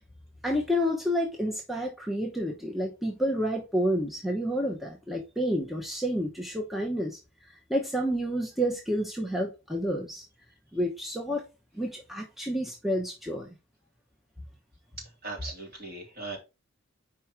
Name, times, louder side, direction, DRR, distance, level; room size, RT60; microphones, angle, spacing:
voice 1, 0.4-7.2 7.7-10.2 10.7-11.4 11.7-13.5, equal, ahead, 0.9 m, -29 dB
voice 2, 15.2-16.4, right 3 dB, 50° right, 3.2 m, -38 dB
4.8 x 4.6 x 4.6 m
head